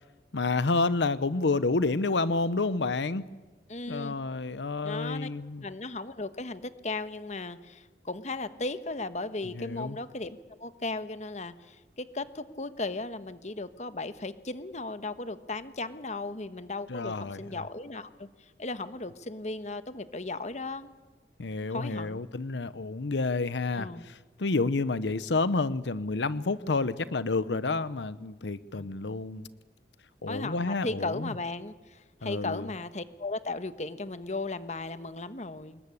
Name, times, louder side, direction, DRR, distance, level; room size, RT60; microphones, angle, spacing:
voice 1, 0.3-3.3 3.9-5.6 9.5-10.0 16.9-17.6 21.4-29.5 30.2-31.3 32.2-32.7, left 3 dB, 90° left, 16 dB, 0.8 m, -29 dB
voice 2, 3.7-4.2 4.8-5.3 5.6-18.3 18.6-20.9 21.7-22.2 23.8-24.0 28.7-28.9 30.3-35.8, left 2 dB, 40° left, 12 dB, 1.2 m, -36 dB
26.5 x 21.0 x 9.9 m, 1.3 s
head